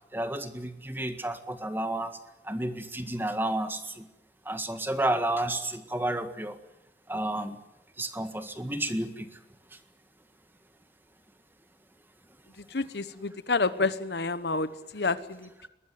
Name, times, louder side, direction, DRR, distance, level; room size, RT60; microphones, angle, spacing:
voice 1, 0.1-2.1 2.5-4.1 4.5-6.6 7.1-7.6 8.0-9.3, right 1 dB, 10° right, 8 dB, 1.8 m, -31 dB
voice 2, 12.6-15.7, left 3 dB, 65° left, 13 dB, 1.2 m, -29 dB
22.0 x 20.0 x 9.4 m, 0.90 s
head